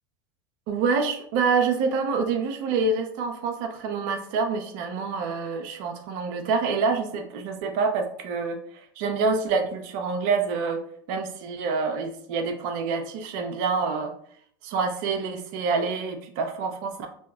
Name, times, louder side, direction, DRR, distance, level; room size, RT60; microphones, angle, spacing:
voice 1, 0.7-10.8 11.1-14.1 14.6-17.1, right 4 dB, 60° right, 5 dB, 0.5 m, -27 dB
4.4 x 2.7 x 2.2 m, 0.64 s
hypercardioid pair, 80°, 11 cm